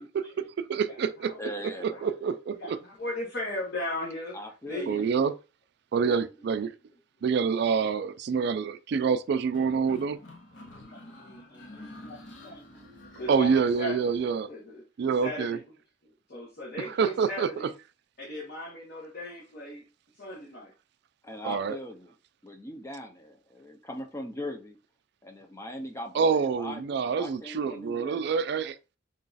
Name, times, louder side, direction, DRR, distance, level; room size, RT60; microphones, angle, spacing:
voice 1, 0.0-1.3 1.8-2.8 4.9-5.3 5.9-6.8 7.2-10.2 13.3-14.5 15.0-15.6 17.0-17.7 21.4-21.8 26.1-28.8, right 6 dB, 60° right, 0.3 m, -27 dB
voice 2, 0.9-2.1 2.6-4.4 4.7-5.0 6.0-6.2 7.8-7.9 10.6-12.6 13.2-14.0 14.5-14.8 15.2-15.6 16.3-17.7 18.2-19.8 20.2-20.7, left 1 dB, 55° left, 1.1 m, -38 dB
voice 3, 1.4-2.0 4.3-5.0 21.2-22.1 22.4-24.8 25.2-28.2, left 1 dB, 15° left, 0.5 m, -40 dB
sound 1, 9.5-14.3, left 1 dB, 75° left, 1.0 m, -48 dB
3.8 x 2.3 x 4.0 m
head